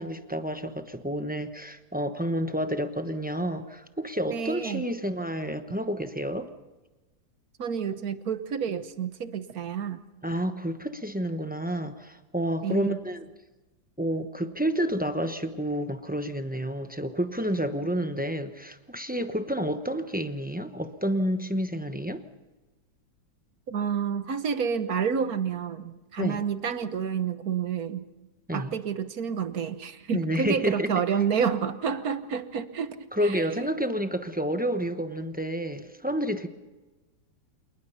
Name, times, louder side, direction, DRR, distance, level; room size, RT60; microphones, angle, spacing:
voice 1, 0.0-6.5 10.2-13.3 14.0-22.2 26.2-26.4 28.5-28.7 30.1-30.9 33.1-36.5, equal, 10° right, 8 dB, 0.4 m, -29 dB
voice 2, 4.3-4.8 7.6-10.0 12.6-13.0 23.7-28.1 28.5-33.0 33.2-33.4, right 7 dB, 55° right, 11 dB, 1.4 m, -29 dB
27.5 x 20.0 x 5.7 m, 1.2 s
omnidirectional pair, 2.1 m